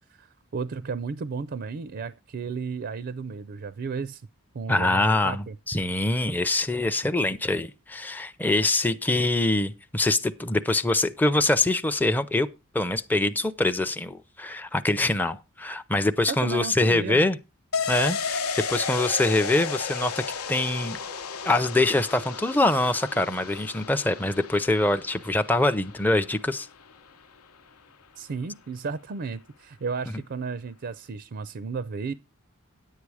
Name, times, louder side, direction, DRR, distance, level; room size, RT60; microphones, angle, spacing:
voice 1, 0.1-4.3 4.5-5.6 16.3-17.2 28.2-32.1, right 5 dB, 50° right, 0.4 m, -33 dB
voice 2, 4.7-12.5 12.7-17.4 17.9-18.4 18.7-21.0 21.5-26.7, left 2 dB, 10° left, 0.5 m, -24 dB
sound 1, 17.7-27.1 27.4-27.5, left 5 dB, 80° left, 0.9 m, -33 dB
10.5 x 8.4 x 4.8 m
head